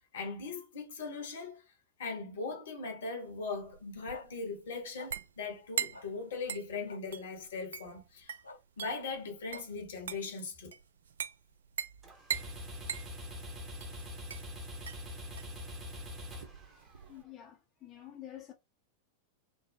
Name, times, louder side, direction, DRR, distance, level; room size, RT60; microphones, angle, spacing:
voice 1, 0.1-1.6 2.0-8.3 8.8-10.7, left 4 dB, 65° left, 0.9 m, -39 dB
sound 1, 3.3-17.2, right 8 dB, 65° right, 0.3 m, -42 dB
sound 2, 4.1-4.2 5.0-5.1 5.9-6.0 6.9-7.0 8.4-8.6 9.5-9.6, left 3 dB, 80° left, 0.5 m, -48 dB
sound 3, 12.0-17.2, left 1 dB, 25° right, 1.0 m, -44 dB
voice 2, 17.1-18.5, left 12 dB, 30° left, 0.6 m, -48 dB
3.2 x 2.0 x 2.6 m
figure-of-eight pair, 90°, 0 cm